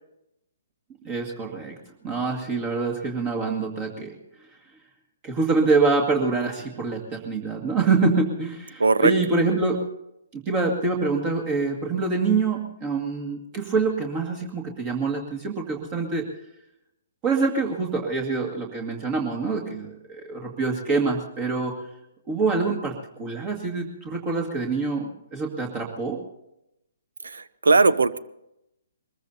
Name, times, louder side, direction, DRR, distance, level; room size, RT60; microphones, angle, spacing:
voice 1, 1.0-1.8 2.0-4.1 5.2-9.8 10.3-16.2 17.2-21.7 22.3-26.2, right 4 dB, 25° right, 1 dB, 2.1 m, -25 dB
voice 2, 8.8-9.1 27.2-28.2, right 3 dB, 70° right, 17 dB, 0.7 m, -19 dB
23.0 x 21.0 x 2.8 m, 0.84 s
figure-of-eight pair, 125°, 0 cm